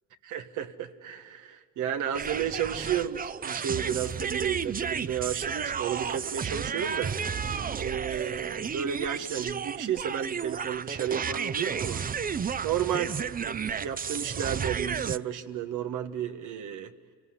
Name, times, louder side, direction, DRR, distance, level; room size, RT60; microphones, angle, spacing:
voice 1, 0.2-7.2 7.8-12.0 12.6-16.9, right 9 dB, 85° right, 8 dB, 1.5 m, -32 dB
sound 1, 2.1-15.2, right 6 dB, 30° right, 0.6 m, -32 dB
28.5 x 18.0 x 9.6 m, 2.1 s
cardioid pair, 90°, 30 cm